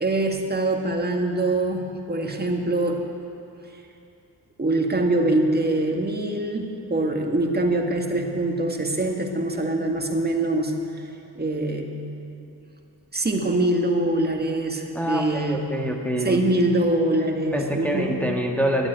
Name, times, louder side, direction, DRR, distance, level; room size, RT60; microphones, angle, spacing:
voice 1, 0.0-3.0 4.6-10.7 11.4-11.9 13.1-15.6 16.2-18.2, right 2 dB, 20° right, 2 dB, 1.9 m, -24 dB
voice 2, 14.9-16.4 17.5-18.9, equal, 5° left, 1 dB, 1.5 m, -26 dB
11.5 x 8.5 x 9.2 m, 2.7 s
supercardioid pair, 55°, 45 cm